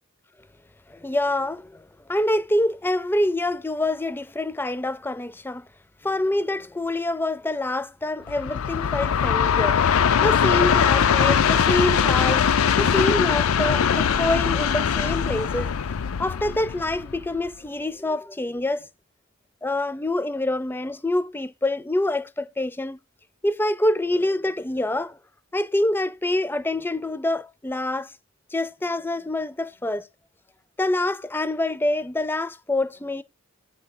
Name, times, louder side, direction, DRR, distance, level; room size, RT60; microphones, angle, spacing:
voice 1, 0.9-5.7 6.0-12.5 12.8-15.7 16.2-18.9 19.6-23.0 23.4-25.2 25.5-28.1 28.5-30.1 30.8-33.2, left 1 dB, 10° left, 0.4 m, -26 dB
Train, 8.3-17.5, left 7 dB, 85° left, 0.5 m, -21 dB
8.3 x 3.5 x 5.9 m
head